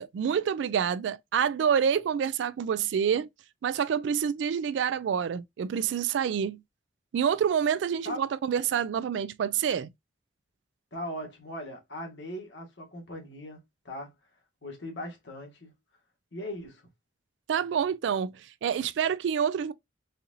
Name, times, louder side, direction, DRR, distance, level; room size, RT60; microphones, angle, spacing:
voice 1, 0.0-3.3 3.6-6.6 7.1-9.9 17.5-19.7, right 8 dB, 80° right, 0.3 m, -27 dB
voice 2, 10.9-13.6 13.8-14.1 14.6-15.7 16.3-16.8, left 1 dB, 75° left, 1.6 m, -39 dB
4.2 x 2.5 x 2.7 m
head